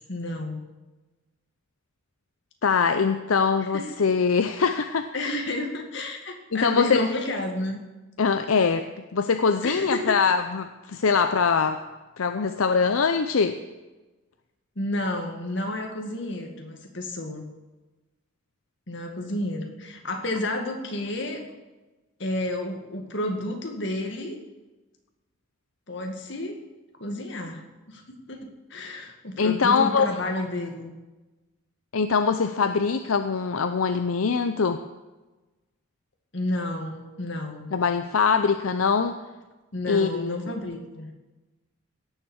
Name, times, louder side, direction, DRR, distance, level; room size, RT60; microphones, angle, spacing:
voice 1, 0.1-0.6 3.6-3.8 5.1-7.8 9.6-10.2 14.8-17.5 18.9-21.4 22.2-24.4 25.9-26.6 27.0-30.9 36.3-37.7 39.7-41.1, left 1 dB, 55° left, 3 dB, 2.1 m, -31 dB
voice 2, 2.6-5.1 6.5-7.1 8.2-8.9 9.1-11.8 12.2-13.6 29.4-30.1 31.9-34.8 37.7-39.2 39.9-40.3, left 5 dB, 80° left, 8 dB, 0.6 m, -23 dB
17.0 x 7.3 x 6.4 m, 1.1 s
head